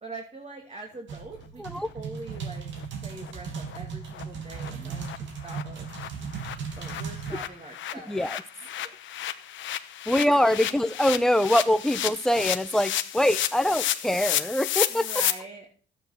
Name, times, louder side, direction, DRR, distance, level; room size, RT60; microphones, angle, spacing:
voice 1, 0.0-2.7 3.0-5.9 6.8-8.2 8.8-9.0 10.3-10.5 14.9-15.7, right 3 dB, 30° right, 2 dB, 2.5 m, -43 dB
sound 1, 1.1-7.3, right 6 dB, 70° right, 2.8 m, -37 dB
sound 2, 2.3-2.4 2.8-2.9 3.2-3.3 3.7-3.8 4.1-4.2 4.5-4.7 5.0-5.2 5.4-15.3, left 11 dB, 75° left, 1.1 m, -32 dB
voice 2, 8.1-8.4 10.1-15.1, left 1 dB, ahead, 13 dB, 0.8 m, -24 dB
13.5 x 9.0 x 5.9 m, 0.42 s
cardioid pair, 90°, 20 cm